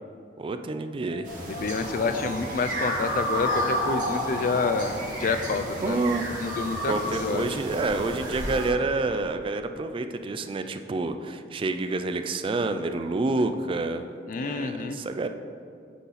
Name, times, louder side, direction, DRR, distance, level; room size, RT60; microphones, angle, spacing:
voice 1, 0.4-1.3 5.8-6.2 6.9-14.1 14.4-15.3, right 3 dB, 30° right, 8 dB, 0.3 m, -28 dB
sound 1, 1.0-8.3, equal, 85° left, 1.5 m, -46 dB
sound 2, 1.2-8.7, equal, 50° right, 1.6 m, -31 dB
voice 2, 1.5-6.0 6.4-7.5 14.3-15.0, left 4 dB, 50° left, 9 dB, 0.4 m, -28 dB
8.2 x 4.0 x 4.0 m, 2.3 s
head